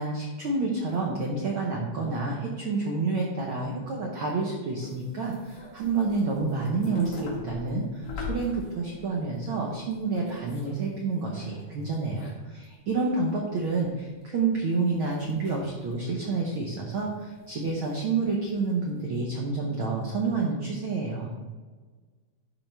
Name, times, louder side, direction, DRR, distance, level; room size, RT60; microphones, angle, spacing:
voice 1, 0.0-21.3, right 3 dB, 85° right, -1 dB, 1.1 m, -29 dB
sound 1, 4.8-10.9 11.1-12.6 13.0-13.1 13.5-14.0 14.2-15.9 16.3-17.0 17.4-18.2 18.5-19.0, left 3 dB, 55° left, 2.9 m, -42 dB
12.0 x 4.4 x 3.4 m, 1.4 s
omnidirectional pair, 3.6 m